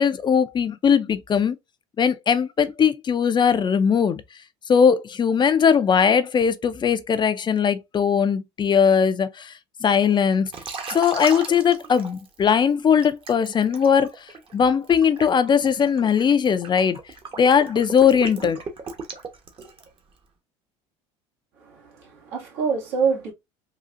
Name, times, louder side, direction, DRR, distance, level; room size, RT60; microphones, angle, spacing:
voice 1, 0.0-1.6 2.0-4.2 4.7-9.5 9.8-10.5 10.9-14.1 14.5-17.0 17.4-18.6, left 7 dB, 30° left, 0.4 m, -19 dB
Liquid, 10.5-12.5 13.0-20.0, right 4 dB, 35° right, 1.0 m, -36 dB
voice 2, 21.7-23.3, right 5 dB, 75° right, 1.8 m, -26 dB
3.8 x 2.4 x 2.4 m
supercardioid pair, 85°, 15 cm